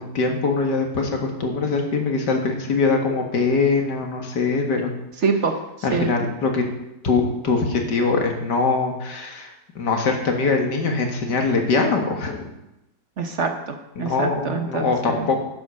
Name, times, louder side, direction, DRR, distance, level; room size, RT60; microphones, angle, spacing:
voice 1, 0.0-4.9 5.8-6.6 7.0-12.5 14.0-15.4, left 4 dB, 85° left, 2 dB, 2.3 m, -22 dB
voice 2, 5.2-5.6 5.9-6.1 13.2-15.3, right 5 dB, 50° right, 5 dB, 1.2 m, -25 dB
10.5 x 7.8 x 6.4 m, 0.91 s
omnidirectional pair, 1.8 m